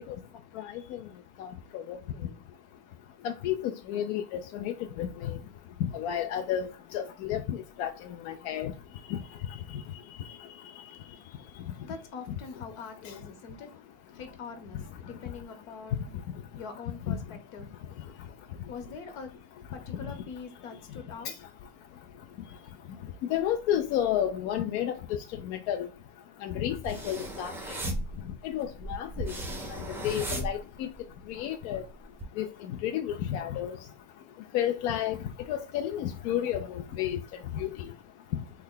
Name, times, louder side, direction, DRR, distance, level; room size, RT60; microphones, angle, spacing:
voice 1, 1.4-2.0 3.2-5.3 5.9-6.7 6.9-7.9 8.2-8.7 9.1-9.2 17.1-17.2 23.3-25.0 25.5-25.9 26.4-27.5 28.5-29.3 30.0-30.9 31.3-31.8 32.4-32.5 32.8-33.7 34.5-35.2 35.5-37.2 37.6-37.7, left 10 dB, 55° left, 0.5 m, -31 dB
voice 2, 11.8-17.7 18.0-18.2 18.7-19.4 19.7-21.3, left 5 dB, 70° left, 1.1 m, -44 dB
sound 1, 26.7-31.2 31.6-32.2, right 1 dB, 5° right, 0.6 m, -36 dB
3.1 x 2.3 x 3.7 m
supercardioid pair, 120°, 42 cm